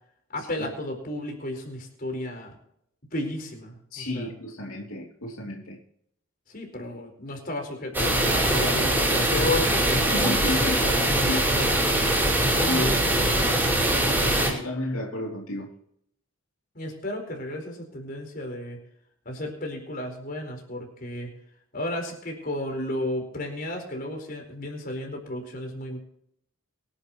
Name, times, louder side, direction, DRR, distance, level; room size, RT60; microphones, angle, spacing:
voice 1, 0.3-2.5 3.1-4.3 6.5-10.3 10.8-11.8 12.4-13.7 16.7-18.8 19.2-21.3 21.7-26.0, left 1 dB, 45° left, 3 dB, 4.5 m, -33 dB
voice 2, 3.9-5.8 10.1-10.9 11.3-11.5 12.7-13.0 14.1-15.7, left 2 dB, 80° left, -1 dB, 2.9 m, -32 dB
sound 1, 7.9-14.5, right 1 dB, 10° right, 5.1 m, -22 dB
24.0 x 11.0 x 3.1 m, 0.70 s
head